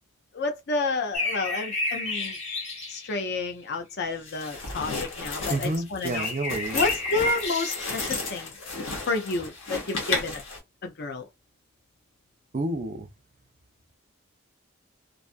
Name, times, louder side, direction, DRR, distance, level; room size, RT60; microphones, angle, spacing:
voice 1, 0.3-2.4 2.9-6.3 6.7-8.5 9.1-10.4 10.8-11.3, left 3 dB, 50° left, 0.5 m, -30 dB
sound 1, 1.1-3.3 6.1-8.1, left 2 dB, 35° left, 0.9 m, -31 dB
sound 2, 4.2-10.6, left 3 dB, 70° left, 0.9 m, -33 dB
voice 2, 5.5-6.8 12.5-13.1, right 2 dB, 35° right, 0.5 m, -29 dB
2.5 x 2.4 x 2.5 m
head